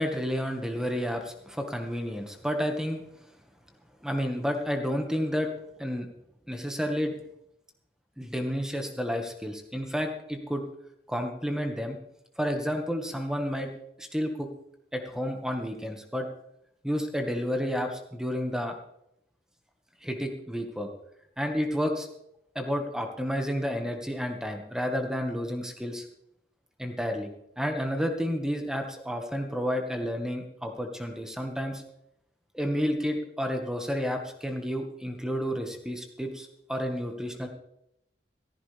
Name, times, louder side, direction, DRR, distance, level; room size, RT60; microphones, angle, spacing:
voice 1, 0.0-3.0 4.0-5.5 5.8-6.1 6.5-7.1 8.2-10.6 11.1-12.0 12.4-13.7 14.0-14.5 14.9-16.3 16.8-18.7 20.0-20.9 21.4-22.1 22.5-26.0 26.8-27.3 27.6-31.8 32.5-37.5, equal, 5° right, 4 dB, 1.6 m, -30 dB
15.5 x 14.5 x 3.4 m, 0.80 s
head